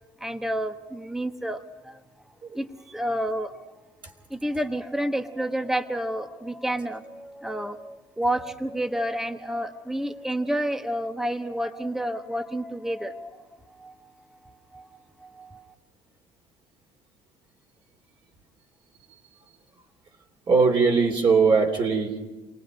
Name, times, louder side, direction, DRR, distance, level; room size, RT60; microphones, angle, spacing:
voice 1, 0.2-2.0 2.5-3.6 4.3-13.3 13.7-14.0 14.4-14.9 15.2-15.7, right 1 dB, 5° right, 8 dB, 1.1 m, -30 dB
voice 2, 20.5-22.3, right 4 dB, 45° right, 2 dB, 3.2 m, -20 dB
28.5 x 19.5 x 5.4 m, 1.2 s
cardioid pair, 105°, 12 cm